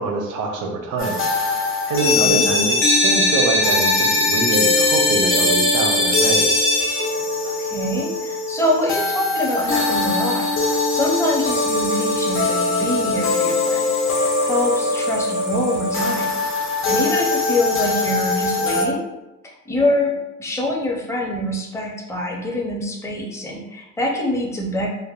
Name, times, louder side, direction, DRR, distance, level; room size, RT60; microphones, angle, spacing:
voice 1, 0.0-6.5, right 3 dB, 80° right, 2 dB, 0.6 m, -25 dB
sound 1, 1.0-18.9, left 2 dB, 45° left, 0.8 m, -20 dB
voice 2, 2.0-2.4 7.6-16.4 16.9-19.0 19.4-20.1 20.4-24.9, left 1 dB, 10° left, -1 dB, 0.5 m, -25 dB
3.3 x 2.1 x 2.4 m, 0.99 s
cardioid pair, 90°, 30 cm